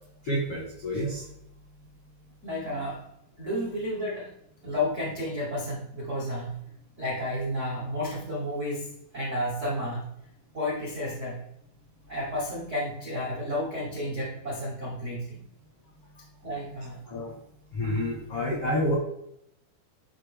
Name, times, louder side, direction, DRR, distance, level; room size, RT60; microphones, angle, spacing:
voice 1, 0.2-1.2 17.1-17.3 17.7-18.9, equal, 75° left, -2 dB, 1.3 m, -28 dB
voice 2, 2.4-3.0 3.4-4.3 4.6-6.6 7.0-8.9 9.1-10.0 10.5-11.4 12.1-15.4 16.4-17.1, left 1 dB, 90° right, -5 dB, 0.6 m, -31 dB
11.0 x 4.0 x 3.5 m, 0.78 s
omnidirectional pair, 5.0 m